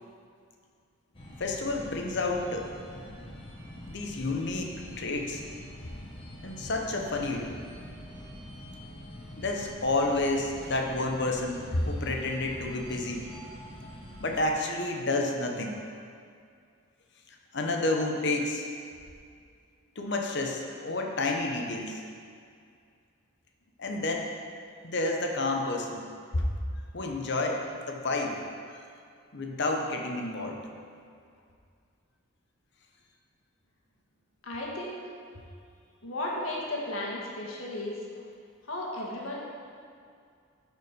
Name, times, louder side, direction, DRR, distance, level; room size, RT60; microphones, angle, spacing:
sound 1, 1.1-14.4, equal, 25° left, 1.2 m, -45 dB
voice 1, 1.4-2.7 3.9-5.4 6.4-7.6 9.4-13.3 14.2-15.8 17.5-18.7 20.0-22.0 23.8-24.2 24.8-26.0 26.3-26.4 26.9-28.4 28.7-28.8 29.3-30.6, left 2 dB, 55° left, 2 dB, 1.0 m, -30 dB
voice 2, 34.4-35.0 36.0-38.1 38.6-39.4, left 1 dB, 85° left, -4 dB, 1.7 m, -34 dB
11.0 x 5.0 x 5.1 m, 2.2 s
head